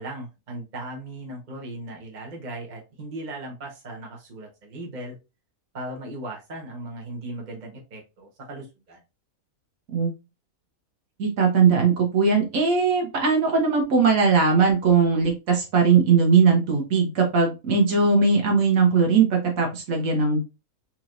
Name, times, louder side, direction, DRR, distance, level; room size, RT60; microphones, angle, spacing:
voice 1, 0.0-5.1 5.7-9.0, right 1 dB, 35° right, -1 dB, 1.2 m, -37 dB
voice 2, 11.2-20.4, right 5 dB, 75° right, 1 dB, 1.5 m, -20 dB
4.4 x 3.1 x 2.5 m, 0.26 s
omnidirectional pair, 1.5 m